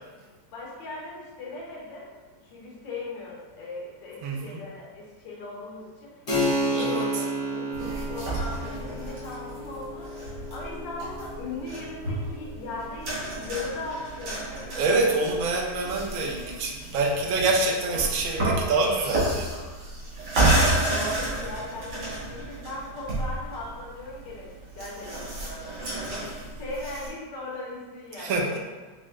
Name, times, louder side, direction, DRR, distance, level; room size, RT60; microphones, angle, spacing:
voice 1, 0.1-2.1 2.4-6.4 6.7-10.2 10.5-14.7 20.5-25.7 26.0-28.6, left 2 dB, 85° left, -5 dB, 1.7 m, -38 dB
voice 2, 4.2-4.6 6.7-7.0 14.7-19.5 28.2-28.6, right 3 dB, 70° right, -1 dB, 0.8 m, -26 dB
Keyboard (musical), 6.3-16.5, equal, 40° left, 0.7 m, -33 dB
sound 1, 7.7-27.1, right 2 dB, 85° right, 1.8 m, -31 dB
6.1 x 2.1 x 2.5 m, 1.3 s
omnidirectional pair, 1.9 m